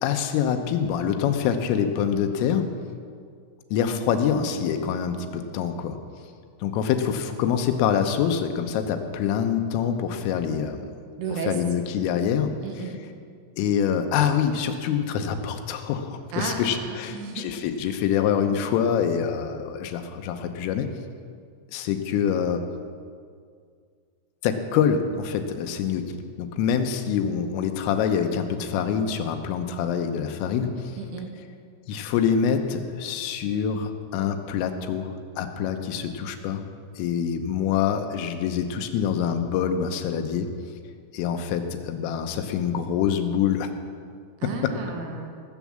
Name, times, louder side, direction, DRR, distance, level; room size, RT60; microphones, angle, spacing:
voice 1, 0.0-2.7 3.7-6.0 6.6-10.8 11.3-12.5 13.6-20.9 21.7-22.6 24.4-26.1 26.4-31.0 31.9-36.6 37.0-40.5 41.1-43.7 44.4-44.7, left 8 dB, 85° left, 6 dB, 3.4 m, -25 dB
voice 2, 11.2-11.6 12.6-13.0 16.3-17.5 31.0-31.3 44.4-45.4, right 5 dB, 65° right, 2 dB, 3.0 m, -33 dB
18.5 x 7.3 x 7.4 m, 2.2 s
omnidirectional pair, 5.8 m